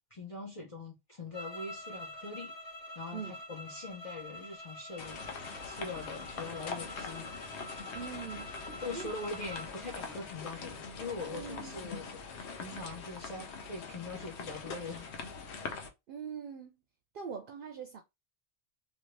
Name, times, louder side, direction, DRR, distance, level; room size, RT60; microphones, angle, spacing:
voice 1, 0.0-2.5 2.9-7.4 8.8-15.1, left 3 dB, 35° left, 0.8 m, -43 dB
sound 1, 1.3-9.7, left 1 dB, 60° left, 1.4 m, -46 dB
sound 2, 5.0-15.9, left 5 dB, 85° left, 1.0 m, -43 dB
voice 2, 7.9-8.5 8.9-9.1 11.3-11.8 16.1-16.8 17.1-18.0, right 6 dB, 60° right, 0.7 m, -42 dB
2.7 x 2.7 x 3.1 m
omnidirectional pair, 1.1 m